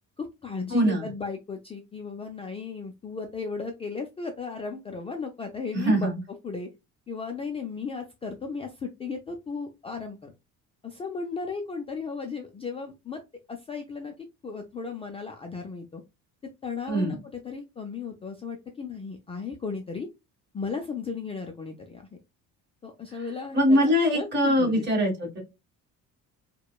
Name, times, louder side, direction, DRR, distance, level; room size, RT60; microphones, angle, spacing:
voice 1, 0.2-6.1 6.4-6.7 7.1-10.3 10.8-13.2 13.5-16.0 16.4-20.1 20.5-22.2 22.8-23.8 24.1-24.8, left 5 dB, 20° left, 4 dB, 0.4 m, -35 dB
voice 2, 0.7-1.1 5.7-6.2 16.9-17.2 23.5-25.4, equal, 35° right, 0 dB, 1.7 m, -22 dB
4.8 x 2.2 x 2.3 m, 0.24 s
cardioid pair, 155°, 32 cm